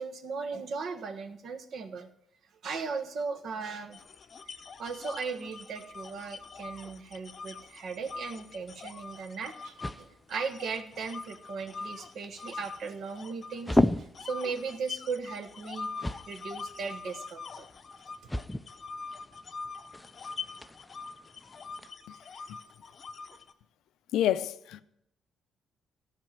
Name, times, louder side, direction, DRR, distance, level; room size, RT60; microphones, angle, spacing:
voice 1, 0.0-2.1 2.6-4.0 4.8-17.7, right 5 dB, 60° right, 1.3 m, -37 dB
sound 1, 3.9-9.9 10.3-13.7 14.1-23.5, left 4 dB, 40° left, 0.7 m, -43 dB
sound 2, 8.5-21.9, left 1 dB, 5° left, 0.4 m, -36 dB
voice 2, 24.1-24.8, left 11 dB, 90° left, 0.6 m, -28 dB
14.0 x 5.7 x 7.5 m
cardioid pair, 125°, 0 cm